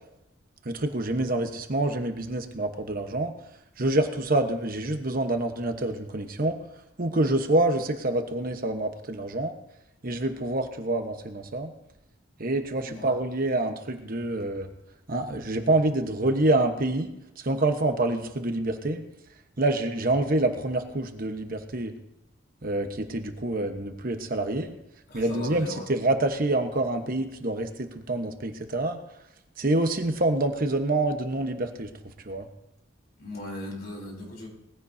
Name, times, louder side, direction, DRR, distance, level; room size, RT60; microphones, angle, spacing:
voice 1, 0.6-3.3 3.8-6.6 7.0-9.5 10.0-11.7 12.4-14.7 15.1-17.1 17.4-19.0 19.6-21.9 22.6-24.7 25.1-29.0 29.6-31.9 32.2-32.5, right 2 dB, 45° right, 6 dB, 1.1 m, -26 dB
voice 2, 12.8-13.1 25.1-25.8 33.2-34.5, left 1 dB, 50° left, -1 dB, 3.8 m, -38 dB
20.0 x 15.0 x 2.7 m, 0.87 s
head